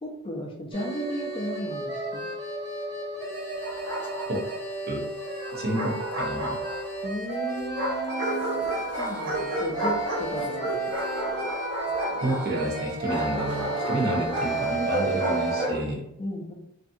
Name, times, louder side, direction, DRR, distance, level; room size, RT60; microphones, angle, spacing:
voice 1, 0.0-2.3 7.0-10.8 16.2-16.5, equal, 25° left, -1 dB, 0.4 m, -35 dB
sound 1, 0.7-15.7, right 2 dB, 65° right, 1.5 m, -32 dB
Bark, 3.6-4.5 5.4-7.0 7.8-15.9, right 1 dB, 90° right, 0.7 m, -32 dB
voice 2, 5.5-6.6 12.2-16.1, right 1 dB, 45° right, 0 dB, 0.5 m, -29 dB
2.6 x 2.3 x 2.5 m, 0.79 s
head